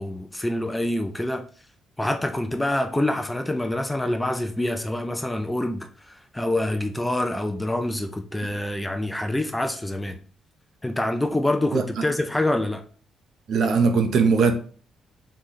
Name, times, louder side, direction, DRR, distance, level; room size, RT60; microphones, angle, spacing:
voice 1, 0.0-1.4 2.0-10.2 10.8-12.8, left 1 dB, 5° left, 0.4 m, -26 dB
voice 2, 11.7-12.0 13.5-14.5, right 5 dB, 50° right, 0.7 m, -20 dB
3.9 x 3.1 x 3.8 m
cardioid pair, 165°, 0 cm